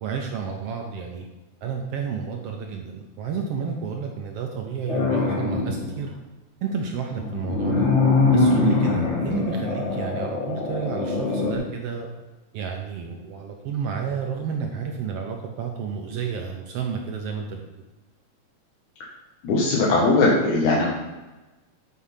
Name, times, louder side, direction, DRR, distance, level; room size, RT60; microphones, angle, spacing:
voice 1, 0.0-1.2 1.6-6.1 6.6-7.9 8.3-12.1 12.5-17.8, right 6 dB, 70° right, 2 dB, 1.5 m, -31 dB
sound 1, 4.9-6.0 7.1-11.6, left 3 dB, 35° left, 1.2 m, -23 dB
voice 2, 19.4-20.9, left 2 dB, 80° left, -3 dB, 2.6 m, -19 dB
8.5 x 4.6 x 5.6 m, 1.1 s
omnidirectional pair, 3.4 m